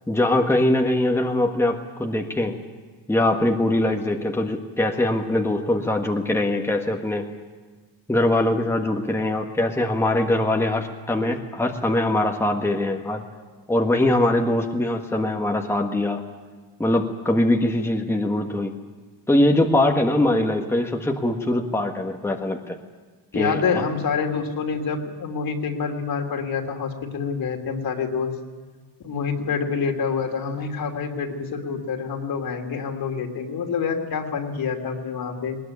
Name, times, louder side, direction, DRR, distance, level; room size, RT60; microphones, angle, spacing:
voice 1, 0.1-2.6 3.1-7.3 8.1-13.2 13.7-16.2 16.8-18.7 19.3-22.8 23.3-23.8, left 1 dB, 5° left, 2 dB, 1.6 m, -22 dB
voice 2, 23.3-28.3 29.0-35.6, left 5 dB, 55° left, 4 dB, 3.1 m, -27 dB
20.5 x 20.0 x 9.7 m, 1.4 s
cardioid pair, 125°, 41 cm